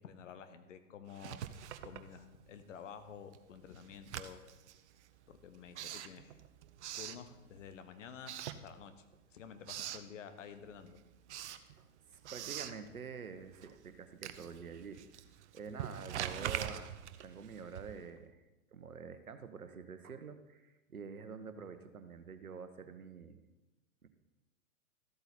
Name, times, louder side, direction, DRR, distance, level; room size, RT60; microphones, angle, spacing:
voice 1, 0.0-1.4 1.8-4.4 5.3-6.4 7.0-9.0 9.3-11.0, left 7 dB, 60° left, 10 dB, 1.2 m, -51 dB
Writing, 1.1-2.7 3.0-7.8 8.2-9.2 9.4-10.1 10.5-18.2, right 11 dB, 55° right, 0.8 m, -44 dB
voice 2, 11.8-15.0 15.5-16.9 17.2-18.4 18.7-23.4 24.0-24.1, right 5 dB, 85° right, 9 dB, 1.1 m, -47 dB
13.5 x 8.0 x 4.2 m, 1.1 s
figure-of-eight pair, 110°, 41 cm